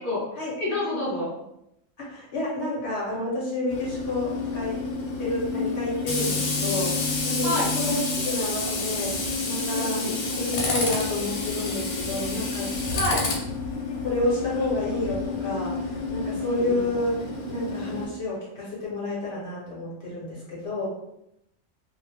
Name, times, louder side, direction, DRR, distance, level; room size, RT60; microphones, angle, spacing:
voice 1, 0.6-1.3 7.4-7.7 9.7-10.1 12.9-13.3 16.6-16.9, left 1 dB, 15° left, -8 dB, 0.7 m, -28 dB
voice 2, 2.0-4.8 5.2-10.1 10.3-12.7 13.7-20.9, left 1 dB, 55° left, -6 dB, 1.0 m, -30 dB
Tools, 3.7-18.1, left 3 dB, 85° left, 1.1 m, -29 dB
2.4 x 2.1 x 3.2 m, 0.82 s
omnidirectional pair, 1.5 m